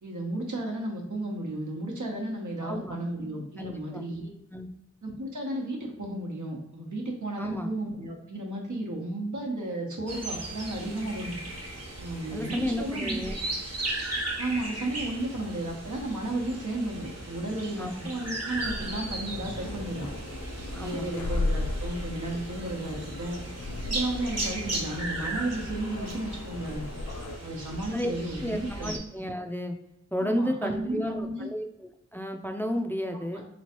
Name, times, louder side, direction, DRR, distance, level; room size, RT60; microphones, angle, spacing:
voice 1, 0.0-4.3 5.0-11.3 12.0-13.2 14.4-20.1 20.8-23.4 23.9-26.8 27.4-28.9 30.2-31.5 33.3-33.4, right 1 dB, 90° right, -1 dB, 0.9 m, -33 dB
voice 2, 2.6-3.0 3.6-4.0 4.5-4.7 7.4-7.7 12.3-13.4 17.8-17.9 20.7-21.2 27.9-28.1 28.4-29.8 30.1-33.4, equal, 5° left, 4 dB, 0.4 m, -32 dB
sound 1, 10.1-29.0, right 2 dB, 55° right, 0.9 m, -37 dB
sound 2, 18.6-27.4, left 2 dB, 80° left, 0.5 m, -36 dB
3.2 x 3.0 x 2.9 m, 0.86 s
wide cardioid pair, 50°, 29 cm